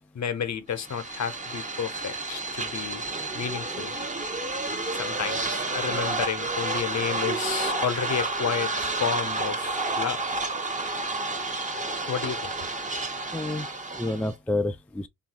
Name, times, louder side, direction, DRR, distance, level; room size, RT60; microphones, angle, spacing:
voice 1, 0.1-3.0 3.3-3.9 4.9-10.4 12.1-12.5, left 7 dB, 45° left, 0.8 m, -31 dB
sound 1, 0.8-14.3, right 2 dB, 20° right, 0.8 m, -30 dB
sound 2, 4.8-6.5 7.2-8.5 8.9-11.2, right 3 dB, 40° right, 1.0 m, -46 dB
voice 2, 13.3-15.1, left 2 dB, 5° left, 0.3 m, -29 dB
3.0 x 2.5 x 2.8 m
supercardioid pair, 60°, 38 cm